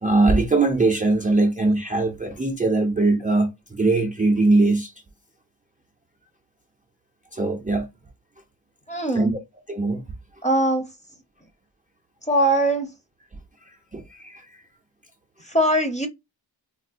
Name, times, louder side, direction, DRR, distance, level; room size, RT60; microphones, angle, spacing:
voice 1, 0.0-4.9 7.3-7.9 9.1-9.3 9.7-10.0 13.6-14.6, right 2 dB, 20° right, 0.5 m, -21 dB
voice 2, 8.9-9.4 10.4-10.9 12.2-12.9 15.4-16.1, right 1 dB, 15° left, 0.7 m, -21 dB
4.3 x 2.0 x 2.4 m
wide cardioid pair, 120°, 45 cm